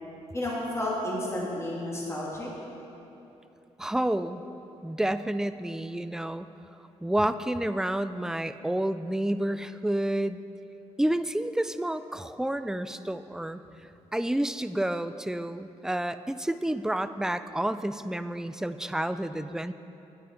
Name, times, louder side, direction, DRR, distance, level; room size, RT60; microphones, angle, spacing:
voice 1, 0.3-2.5, left 1 dB, 20° left, -5 dB, 2.4 m, -31 dB
voice 2, 3.8-4.4 4.8-6.5 7.0-10.4 11.0-13.6 14.1-19.7, right 1 dB, 5° right, 12 dB, 0.4 m, -29 dB
10.5 x 9.1 x 4.4 m, 2.9 s
cardioid pair, 75°, 13 cm